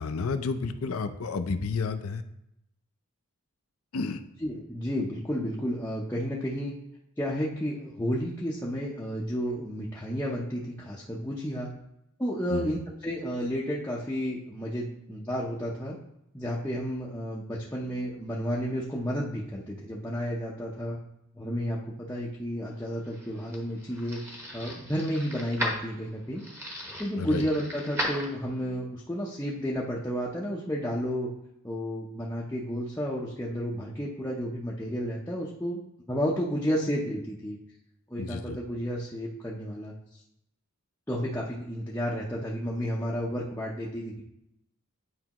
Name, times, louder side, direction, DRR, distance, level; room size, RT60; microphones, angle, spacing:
voice 1, 0.0-2.2 3.9-4.2 12.5-12.7 27.2-27.5 38.2-38.6, left 4 dB, 75° left, 9 dB, 0.5 m, -31 dB
voice 2, 4.4-6.7 7.2-11.7 12.2-16.0 16.3-21.0 21.3-26.4 27.0-31.3 31.6-35.8 36.1-37.6 38.1-40.2 41.1-44.2, equal, 10° left, -6 dB, 0.6 m, -32 dB
sound 1, 22.8-28.8, equal, 10° right, 1.0 m, -37 dB
9.5 x 4.6 x 3.0 m, 0.80 s
head